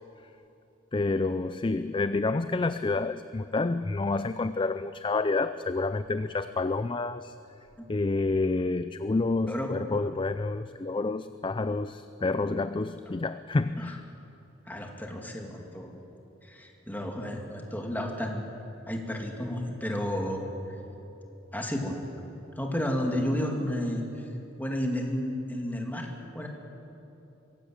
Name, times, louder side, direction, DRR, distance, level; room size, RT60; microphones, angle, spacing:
voice 1, 0.9-7.3 7.9-14.0, left 3 dB, 25° left, 12 dB, 0.4 m, -29 dB
voice 2, 14.7-16.0 16.4-18.4 18.9-20.4 21.5-22.0 22.6-24.0 24.6-26.1 26.3-26.5, left 1 dB, 10° left, 1 dB, 2.5 m, -32 dB
23.5 x 16.5 x 8.9 m, 2.9 s
head